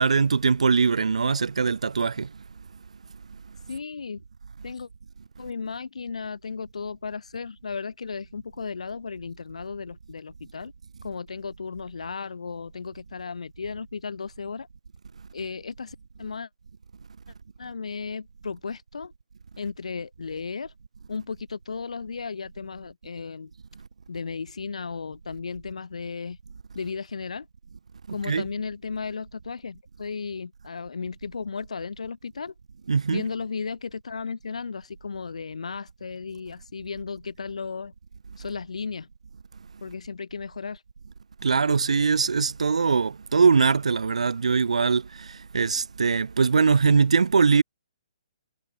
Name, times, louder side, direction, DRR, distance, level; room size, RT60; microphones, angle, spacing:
voice 1, 0.0-2.3 28.2-28.4 32.9-33.2 41.4-47.6, right 5 dB, 75° right, 0.7 m, -22 dB
voice 2, 3.7-4.2 4.6-4.9 5.4-10.7 11.0-14.7 15.3-16.5 17.6-19.1 19.6-20.7 21.1-23.5 24.1-26.4 26.7-27.5 28.1-32.5 33.1-37.9 38.4-39.1 39.8-40.8, left 5 dB, 70° left, 1.4 m, -35 dB
figure-of-eight pair, 135°, 4 cm